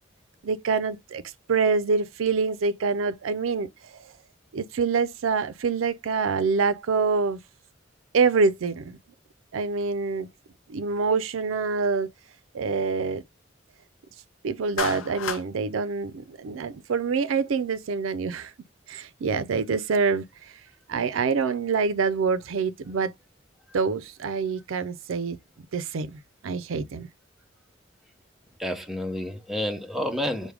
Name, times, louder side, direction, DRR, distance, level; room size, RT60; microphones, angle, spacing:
voice 1, 0.4-1.2 1.5-3.7 4.5-7.4 8.1-9.0 9.5-10.3 10.7-12.1 12.5-13.2 14.4-18.5 18.9-20.2 20.9-23.1 23.7-25.4 25.7-27.1, right 4 dB, 85° right, 0.4 m, -26 dB
Clapping, 14.8-15.5, left 7 dB, 80° left, 0.5 m, -30 dB
voice 2, 28.6-30.5, left 1 dB, ahead, 0.6 m, -29 dB
4.7 x 2.2 x 3.3 m
head